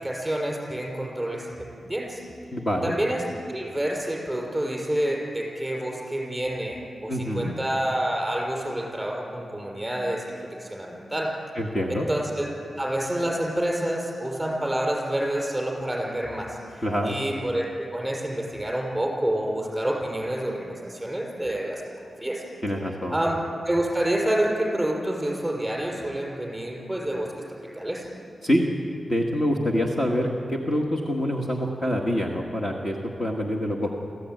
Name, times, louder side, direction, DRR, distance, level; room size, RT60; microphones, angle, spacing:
voice 1, 0.0-2.2 2.8-10.3 10.6-11.3 11.9-12.5 12.8-17.6 17.9-22.4 23.1-23.4 23.6-27.3 27.7-28.1, right 1 dB, 5° right, -1 dB, 5.8 m, -28 dB
voice 2, 2.5-3.0 7.1-7.5 11.5-12.1 16.8-17.2 22.6-23.1 28.4-28.6 29.0-34.0, equal, 30° left, -1 dB, 1.7 m, -26 dB
26.5 x 15.0 x 9.3 m, 2.5 s
wide cardioid pair, 160°, 0 cm